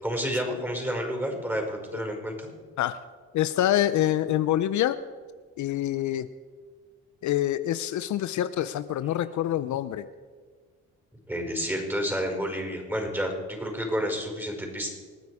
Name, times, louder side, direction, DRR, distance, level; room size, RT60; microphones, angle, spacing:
voice 1, 0.0-2.5 11.3-13.3 13.6-14.9, equal, 5° right, 2 dB, 5.3 m, -30 dB
voice 2, 3.3-5.0 5.6-6.3 7.2-10.1, left 12 dB, 70° left, 13 dB, 0.7 m, -26 dB
26.0 x 9.4 x 4.9 m, 1.5 s
cardioid pair, 90°, 30 cm